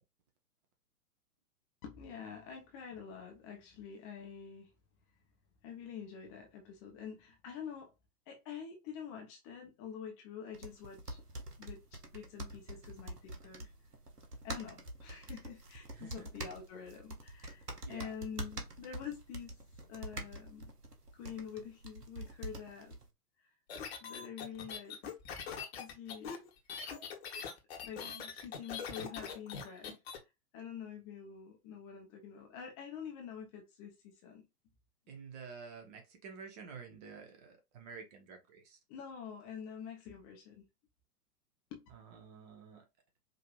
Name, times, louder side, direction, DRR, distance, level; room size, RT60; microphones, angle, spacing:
voice 1, 1.8-4.7 5.6-7.9 8.3-11.2 11.6-13.7 14.4-19.6 19.9-20.7 21.1-23.0 24.0-25.0 25.8-26.4 27.8-30.0 30.5-34.5 38.9-40.6 41.7-41.8, left 7 dB, 20° left, 0.7 m, -47 dB
sound 1, 10.5-23.1, right 1 dB, 80° right, 1.2 m, -46 dB
voice 2, 15.9-16.3 17.8-18.1 35.1-38.8 41.9-42.9, right 5 dB, 25° right, 0.8 m, -50 dB
sound 2, 23.7-30.2, left 6 dB, 40° left, 1.1 m, -42 dB
5.1 x 2.8 x 2.3 m
figure-of-eight pair, 110°, 47 cm